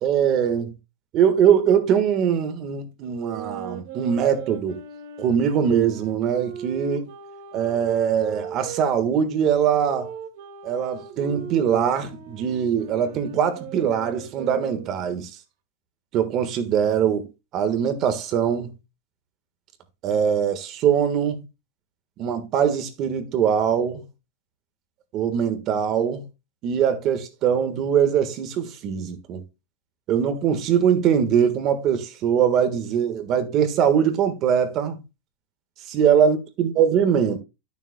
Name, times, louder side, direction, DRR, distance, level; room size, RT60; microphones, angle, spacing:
voice 1, 0.0-0.7 1.1-4.8 5.2-7.1 7.5-10.1 10.6-15.3 16.1-17.3 17.5-18.7 20.0-21.4 22.2-24.0 25.1-26.3 26.6-29.4 30.1-35.0 35.9-37.4, right 8 dB, 30° right, 1.5 m, -22 dB
sound 1, 3.1-8.9 9.6-15.1, right 7 dB, 50° right, 2.0 m, -38 dB
12.0 x 7.0 x 2.3 m
supercardioid pair, 165°, 0 cm